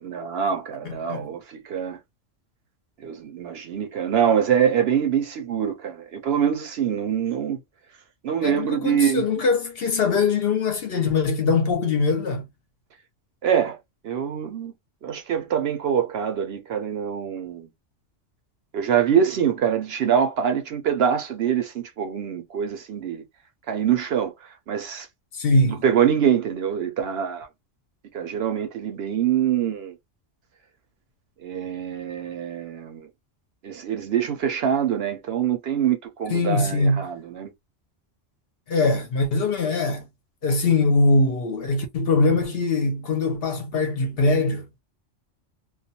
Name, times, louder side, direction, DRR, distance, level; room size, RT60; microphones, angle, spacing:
voice 1, 0.0-2.0 3.0-7.6 8.2-9.2 13.4-13.8 14.0-14.7 15.0-17.7 18.7-23.2 23.7-24.3 24.7-25.1 25.7-27.5 28.1-30.0 31.4-33.1 33.6-37.5, right 8 dB, 65° right, 0.7 m, -24 dB
voice 2, 0.8-1.3 8.4-12.4 25.3-25.8 36.3-37.1 38.7-40.1 40.4-44.7, left 3 dB, 60° left, 0.8 m, -22 dB
2.3 x 2.2 x 2.7 m
omnidirectional pair, 1.3 m